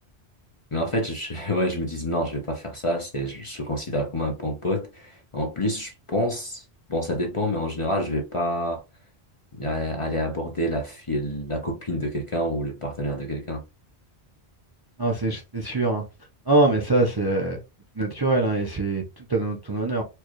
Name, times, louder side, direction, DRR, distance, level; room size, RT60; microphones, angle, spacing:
voice 1, 0.7-6.6 6.9-8.8 9.5-13.6, equal, 35° left, 0.7 m, -28 dB
voice 2, 15.0-16.0 16.5-17.6 18.0-20.0, right 2 dB, 30° right, 0.5 m, -23 dB
4.5 x 2.3 x 3.0 m
omnidirectional pair, 1.1 m